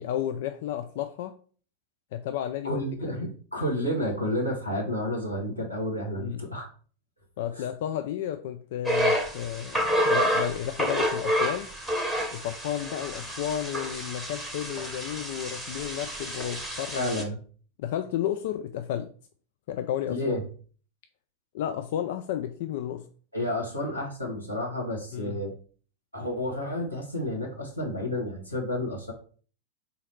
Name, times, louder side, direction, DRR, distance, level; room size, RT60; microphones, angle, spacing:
voice 1, 0.0-1.3 2.1-3.2 6.2-6.4 7.4-11.7 12.3-17.2 17.8-19.1 19.7-20.4 21.5-23.0 25.1-25.4, left 10 dB, 50° left, 7 dB, 0.3 m, -32 dB
voice 2, 2.6-6.7 7.5-7.6 16.9-17.4 20.1-20.4 23.3-25.6 26.1-29.1, left 1 dB, 90° left, -2 dB, 1.3 m, -30 dB
sound 1, 8.8-17.2, equal, 5° right, 0.8 m, -29 dB
4.0 x 2.8 x 4.2 m, 0.41 s
figure-of-eight pair, 90°, 0 cm